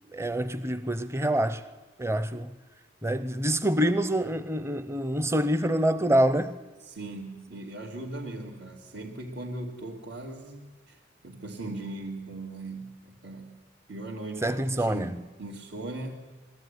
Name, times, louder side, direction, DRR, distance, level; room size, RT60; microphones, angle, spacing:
voice 1, 0.1-1.6 2.0-2.5 3.0-6.6 14.4-15.1, right 1 dB, 15° right, 0.7 m, -26 dB
voice 2, 6.8-11.0 11.2-13.6 13.9-16.3, right 2 dB, 75° right, 2.5 m, -39 dB
21.5 x 14.0 x 9.6 m
head